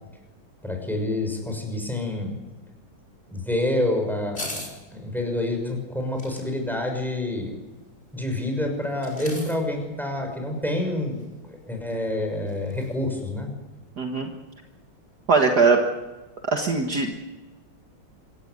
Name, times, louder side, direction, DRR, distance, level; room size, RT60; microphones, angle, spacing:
voice 1, 0.6-2.3 3.3-4.6 4.9-7.5 8.1-13.5, left 1 dB, ahead, 4 dB, 6.0 m, -28 dB
sound 1, 4.3-4.7 6.2-6.5 8.9-9.6 11.2-11.3 11.5-11.6 11.9-12.0 12.5-12.9 13.2-13.3, left 1 dB, 30° left, 5.1 m, -37 dB
voice 2, 14.0-14.3 15.3-15.8 16.5-17.1, right 4 dB, 50° right, 3 dB, 2.1 m, -20 dB
26.0 x 16.0 x 9.6 m, 1.2 s
omnidirectional pair, 2.3 m